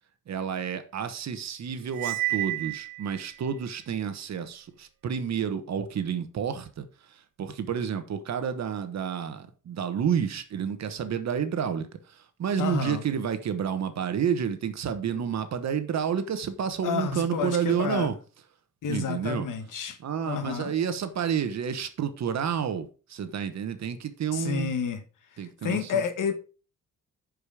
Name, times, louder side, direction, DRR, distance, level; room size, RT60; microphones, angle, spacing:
voice 1, 0.3-18.1 18.9-19.5 20.0-24.7 25.4-26.0, right 7 dB, 55° right, 1.2 m, -30 dB
Cymbal, 1.9-3.4, right 19 dB, 80° right, 0.7 m, -31 dB
voice 2, 12.6-13.0 15.1-15.2 16.8-18.1 18.8-20.0 20.2-20.7 24.3-25.0 25.4-26.3, left 6 dB, 65° left, 1.6 m, -30 dB
10.5 x 5.1 x 5.0 m
cardioid pair, 155°, 33 cm